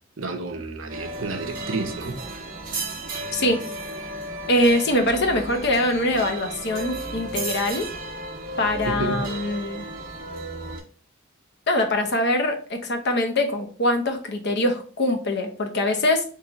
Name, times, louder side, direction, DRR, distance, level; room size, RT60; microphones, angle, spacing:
voice 1, 0.2-2.2 8.8-9.3, right 3 dB, 70° right, 0.7 m, -30 dB
sound 1, 0.9-10.8, right 2 dB, 40° right, 0.9 m, -34 dB
voice 2, 4.5-7.9 8.6-9.8 11.7-16.2, left 1 dB, 55° left, 0.8 m, -23 dB
3.7 x 3.1 x 2.9 m
head